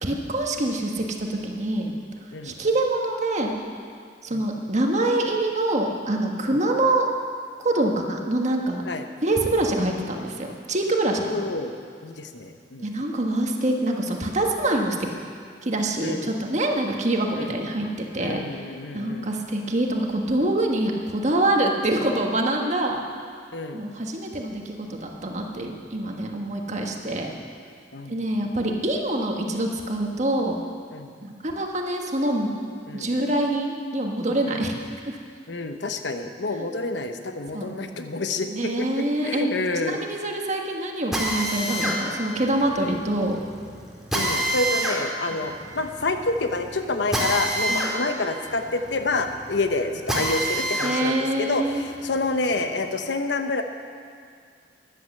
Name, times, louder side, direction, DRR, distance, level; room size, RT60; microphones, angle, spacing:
voice 1, 0.0-1.9 2.4-3.5 4.2-7.1 7.6-8.8 9.2-11.4 12.8-15.0 15.6-17.9 18.1-18.4 18.9-23.0 23.7-27.3 28.1-30.6 31.2-32.5 32.9-34.7 35.0-35.2 36.6-36.7 37.5-37.7 38.5-43.4 47.7-47.8 50.8-52.0, right 1 dB, 40° right, 1 dB, 1.5 m, -25 dB
voice 2, 11.2-11.7 12.0-12.9 16.0-16.3 17.4-17.6 18.2-19.3 23.5-23.8 27.9-28.2 30.9-31.1 32.9-33.1 34.5-34.6 35.5-40.0 44.1-53.6, left 3 dB, 90° left, 6 dB, 1.0 m, -28 dB
Drill, 41.1-51.0 51.4-53.0, right 1 dB, 5° right, 2.4 m, -28 dB
14.0 x 10.5 x 6.7 m, 2.2 s
head